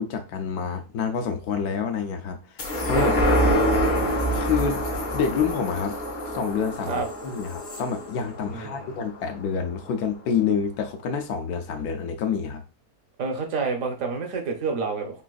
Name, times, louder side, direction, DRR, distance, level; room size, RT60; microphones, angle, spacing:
voice 1, 0.0-3.4 4.3-4.8 5.1-6.0 6.2-12.6, left 6 dB, 75° left, 1.1 m, -28 dB
sound 1, 2.6-9.4 9.8-9.9, equal, 50° left, 0.5 m, -26 dB
voice 2, 8.5-9.0 13.2-15.2, right 4 dB, 65° right, 1.0 m, -29 dB
3.9 x 2.4 x 2.3 m
omnidirectional pair, 1.7 m